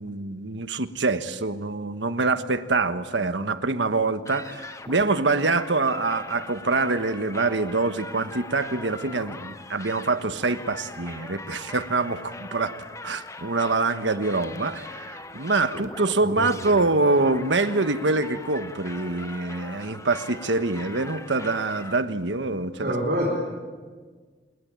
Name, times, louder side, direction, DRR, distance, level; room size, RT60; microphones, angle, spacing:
voice 1, 0.0-12.8 13.0-22.9, right 3 dB, 80° right, 10 dB, 1.3 m, -25 dB
sound 1, 4.2-22.0, left 2 dB, 15° left, 1.1 m, -41 dB
voice 2, 16.4-16.9 22.8-23.3, equal, 50° right, -3 dB, 4.6 m, -28 dB
27.5 x 21.5 x 9.0 m, 1.5 s
head